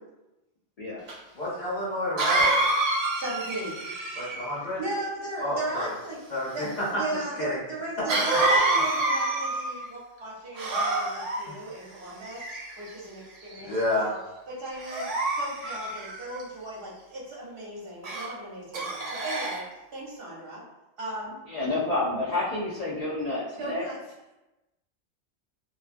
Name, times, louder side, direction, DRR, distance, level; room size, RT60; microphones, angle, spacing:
Cough, 1.1-1.2 2.2-4.5 8.1-9.8 10.5-11.4 12.2-12.9 13.5-13.8 14.8-16.4 18.0-18.3 18.7-19.6, right 2 dB, 85° right, 0.3 m, -27 dB
voice 1, 1.3-2.5 4.2-4.8 5.4-5.9 6.3-6.9 7.4-7.6 8.0-8.1 11.5-11.6 13.6-14.1, left 1 dB, 40° left, -7 dB, 1.0 m, -29 dB
voice 2, 3.1-3.7 4.8-6.2 6.5-12.4 12.8-14.2 14.5-15.1 15.4-19.6 19.9-20.6 21.0-21.4 23.6-24.0, right 1 dB, 55° right, -5 dB, 0.9 m, -36 dB
voice 3, 21.5-23.8, left 2 dB, 85° left, -7 dB, 0.3 m, -29 dB
2.3 x 2.2 x 2.4 m, 1.0 s
omnidirectional pair, 1.2 m